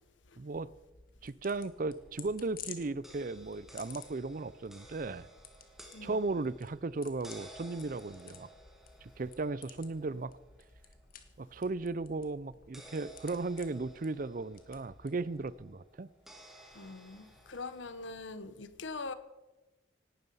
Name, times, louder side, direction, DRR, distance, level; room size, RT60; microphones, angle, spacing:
voice 1, 0.4-0.7 1.2-5.3 6.0-8.5 9.0-10.4 11.4-16.1, right 3 dB, 45° right, 0.5 m, -36 dB
sound 1, 0.5-15.7, left 7 dB, 50° left, 1.6 m, -54 dB
sound 2, 1.6-18.2, right 1 dB, ahead, 2.1 m, -57 dB
voice 2, 5.9-6.2 16.7-19.1, left 3 dB, 80° left, 1.1 m, -43 dB
18.0 x 12.0 x 5.5 m
head